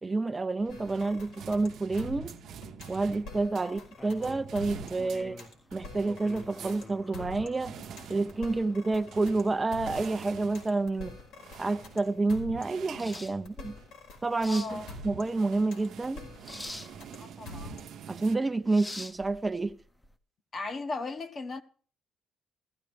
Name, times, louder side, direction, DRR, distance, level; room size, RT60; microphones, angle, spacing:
voice 1, 0.0-2.3 2.9-5.4 5.7-7.7 8.1-11.2 11.6-13.7 14.2-16.2 18.1-19.7, right 3 dB, 20° right, 0.6 m, -29 dB
sound 1, 0.6-3.8 4.2-14.0 14.3-18.4, right 8 dB, 70° right, 0.9 m, -47 dB
sound 2, 0.7-18.1, left 3 dB, 85° left, 4.9 m, -46 dB
sound 3, 3.9-20.1, left 1 dB, 15° left, 0.8 m, -48 dB
voice 2, 14.5-14.9 17.2-17.9 20.5-21.6, left 3 dB, 40° left, 1.2 m, -37 dB
15.5 x 14.5 x 3.5 m
cardioid pair, 100°, 0 cm